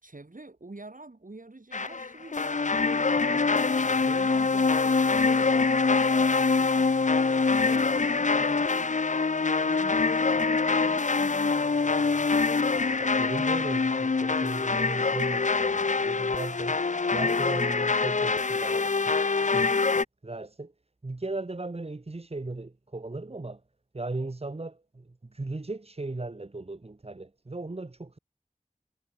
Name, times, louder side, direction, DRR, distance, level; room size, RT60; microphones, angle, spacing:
voice 1, 0.0-2.7 3.3-3.5 3.9-5.7 6.3-8.9 9.3-12.3, right 2 dB, 75° right, 3.6 m, -47 dB
sound 1, 1.7-20.0, left 4 dB, 65° left, 0.5 m, -25 dB
voice 2, 12.9-16.8 17.1-19.8 20.2-20.7 21.0-23.6 23.9-28.2, right 2 dB, 45° right, 0.9 m, -37 dB
wide cardioid pair, 40°, 14 cm